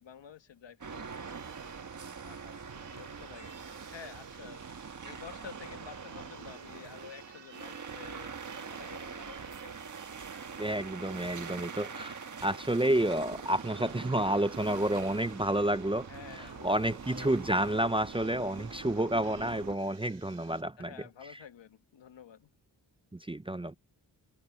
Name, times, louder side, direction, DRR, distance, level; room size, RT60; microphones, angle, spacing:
voice 1, 0.0-1.8 2.2-4.8 5.0-9.9 16.1-17.6 20.8-22.5, left 8 dB, 80° left, 1.5 m, -51 dB
sound 1, 0.8-19.8, right 5 dB, 45° right, 1.4 m, -44 dB
sound 2, 0.9-20.6, right 7 dB, 85° right, 8.0 m, -55 dB
voice 2, 10.6-16.1 16.3-20.9 23.3-23.8, right 1 dB, 10° right, 0.6 m, -30 dB
wide cardioid pair, 85°, 44 cm